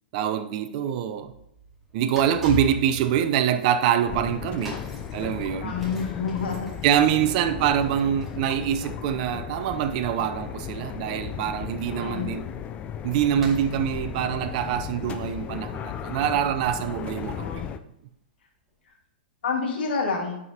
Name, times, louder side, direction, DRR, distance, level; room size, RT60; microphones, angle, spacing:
voice 1, 0.1-1.3 1.9-4.8 5.1-5.7 6.8-12.4 13.0-17.4, right 9 dB, 45° right, 0.5 m, -25 dB
sound 1, 1.1-18.0 18.7-18.8, left 3 dB, ahead, 2.2 m, -44 dB
sound 2, 4.1-17.8, left 8 dB, 25° left, 0.4 m, -36 dB
sound 3, 5.5-5.6 6.3-6.6 8.5-8.7 9.0-9.3, left 7 dB, 45° left, 0.8 m, -48 dB
voice 2, 5.6-6.7 11.9-12.3 17.3-17.6 19.4-20.4, left 5 dB, 75° left, 1.8 m, -29 dB
10.5 x 4.8 x 2.8 m
hypercardioid pair, 135°, 6 cm